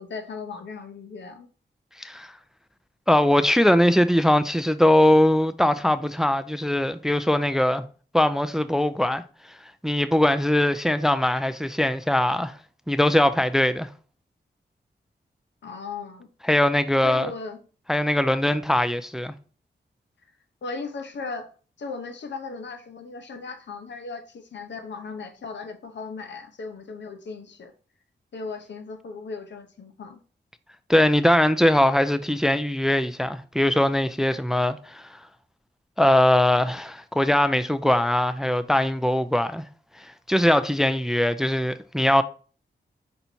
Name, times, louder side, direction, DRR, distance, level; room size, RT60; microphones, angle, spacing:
voice 1, 0.0-1.5 15.6-16.3 17.0-17.6 20.6-21.5 21.8-27.7 28.3-30.2, left 4 dB, 85° left, 0.9 m, -37 dB
voice 2, 2.0-2.3 3.1-7.9 8.1-9.2 9.8-12.6 12.9-13.9 16.5-17.3 17.9-19.3 30.9-35.2 36.0-39.6 40.3-42.2, left 1 dB, 5° right, 0.4 m, -21 dB
5.7 x 4.0 x 4.4 m
wide cardioid pair, 95°, 18 cm